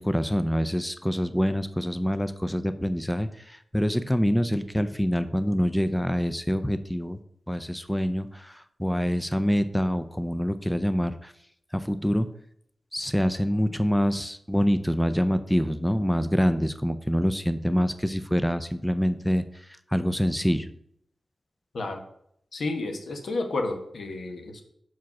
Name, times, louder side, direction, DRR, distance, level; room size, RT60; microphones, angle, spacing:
voice 1, 0.0-7.2 7.5-11.3 11.7-12.3 12.9-19.4 19.9-20.7, equal, 5° left, 11 dB, 0.4 m, -26 dB
voice 2, 22.5-24.6, left 2 dB, 80° left, 4 dB, 1.1 m, -31 dB
6.0 x 4.8 x 5.9 m, 0.71 s
wide cardioid pair, 145°, 0 cm